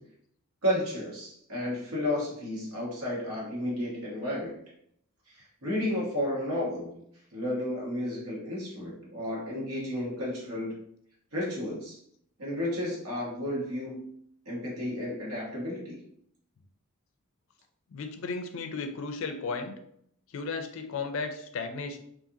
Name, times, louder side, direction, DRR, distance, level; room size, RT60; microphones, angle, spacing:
voice 1, 0.6-4.6 5.3-7.0 7.3-10.8 11.3-12.0 12.4-14.1 14.4-16.0, left 1 dB, 85° right, -4 dB, 1.2 m, -32 dB
voice 2, 17.9-19.7 20.3-22.0, left 4 dB, 65° left, 6 dB, 0.4 m, -34 dB
2.7 x 2.6 x 2.5 m, 0.68 s
head